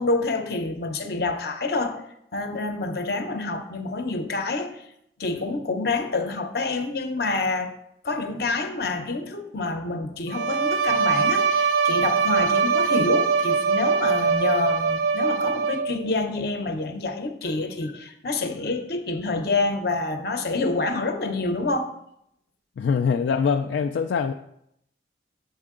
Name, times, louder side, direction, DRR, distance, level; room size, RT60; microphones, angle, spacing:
voice 1, 0.0-2.0 2.3-4.9 5.2-7.7 8.0-21.9, left 3 dB, 60° left, 7 dB, 0.7 m, -27 dB
Bowed string instrument, 10.3-16.1, right 5 dB, 80° right, 0.5 m, -22 dB
voice 2, 22.8-24.3, left 6 dB, 80° left, 6 dB, 0.3 m, -23 dB
7.6 x 4.5 x 3.7 m, 0.75 s
head